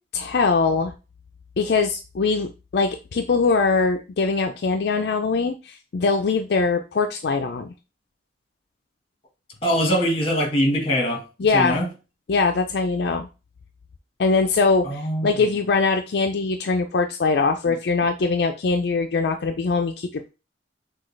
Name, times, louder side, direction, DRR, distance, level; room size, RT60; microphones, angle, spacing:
voice 1, 0.1-0.9 1.6-7.7 11.4-11.8 12.3-13.3 14.2-20.3, left 4 dB, 65° left, 0.4 m, -22 dB
voice 2, 9.6-11.2 11.5-11.9 14.8-15.3 17.7-17.8, equal, 35° left, 1.5 m, -22 dB
6.1 x 2.3 x 3.2 m
head